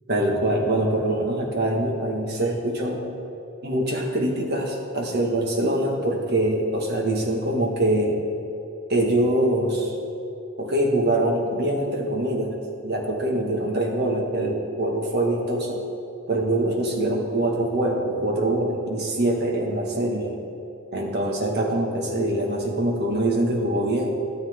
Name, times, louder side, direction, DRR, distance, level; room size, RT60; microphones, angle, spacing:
voice 1, 0.1-3.0 3.6-8.2 8.9-10.0 10.6-12.6 12.8-15.8 16.3-20.4 20.9-24.1, right 1 dB, 55° right, 1 dB, 1.7 m, -24 dB
13.0 x 12.5 x 3.7 m, 2.9 s
head